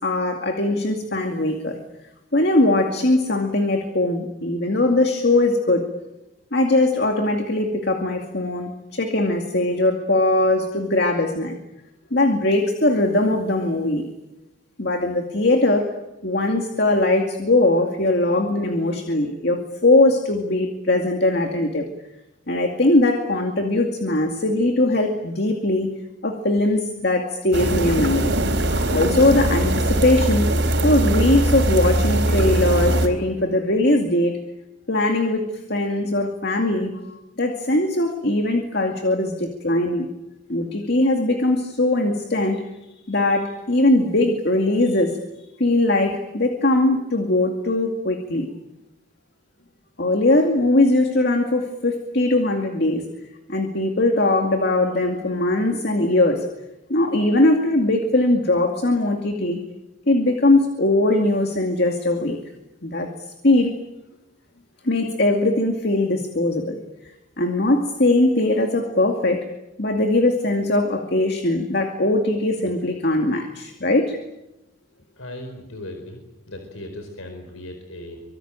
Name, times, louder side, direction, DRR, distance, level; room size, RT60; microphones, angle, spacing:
voice 1, 0.0-1.8 2.3-5.9 6.5-11.6 12.1-14.1 14.8-15.9 16.2-21.9 22.5-25.9 26.2-28.3 28.7-30.5 30.8-34.4 34.9-36.9 37.4-40.1 40.5-42.6 43.1-45.2 45.6-48.5 50.0-53.0 53.5-56.4 56.9-59.6 60.1-62.4 62.8-63.1 63.4-63.7 64.8-66.8 67.4-69.4 69.8-74.2, left 2 dB, 50° left, 4 dB, 2.3 m, -20 dB
sound 1, 27.5-33.1, right 1 dB, 60° right, 4.3 m, -21 dB
voice 2, 75.2-76.2 76.5-78.2, left 1 dB, 85° left, 5 dB, 4.6 m, -37 dB
25.5 x 23.5 x 8.9 m, 0.96 s
head